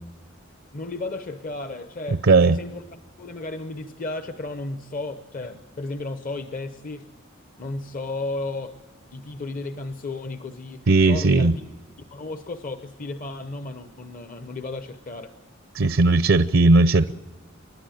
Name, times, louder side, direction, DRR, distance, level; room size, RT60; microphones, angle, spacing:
voice 1, 0.7-7.1 7.6-8.8 9.1-11.5 12.1-15.3, left 2 dB, 40° left, 9 dB, 0.8 m, -34 dB
voice 2, 2.3-2.6 10.9-11.5 15.7-17.1, right 3 dB, 70° right, 13 dB, 0.6 m, -17 dB
29.5 x 12.0 x 9.1 m, 1.2 s
head